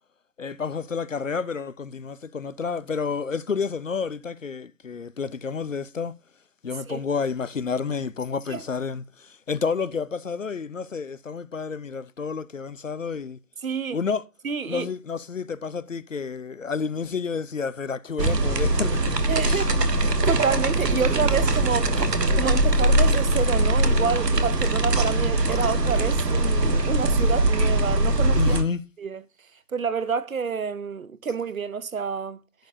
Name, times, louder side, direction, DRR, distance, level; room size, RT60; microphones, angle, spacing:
voice 1, 0.4-6.1 6.6-13.4 13.9-14.2 14.7-19.0 19.4-19.7 21.9-22.1 28.3-28.8, left 5 dB, 50° left, 0.7 m, -30 dB
voice 2, 13.6-14.0 14.4-14.9 19.3-19.8 20.0-21.9 22.3-28.6 29.0-29.2 29.7-32.4, right 5 dB, 55° right, 0.9 m, -28 dB
sound 1, 18.2-28.6, right 2 dB, 75° right, 1.5 m, -21 dB
11.5 x 8.7 x 2.6 m
figure-of-eight pair, 155°, 50 cm